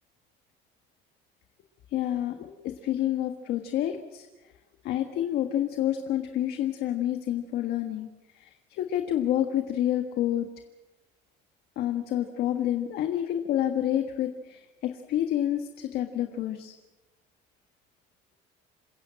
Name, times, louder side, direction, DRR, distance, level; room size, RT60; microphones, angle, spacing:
voice 1, 1.9-4.3 4.8-8.1 8.3-10.5 11.8-16.8, left 11 dB, 60° left, 5 dB, 1.6 m, -28 dB
27.5 x 16.0 x 7.6 m, 1.2 s
cardioid pair, 170°, 19 cm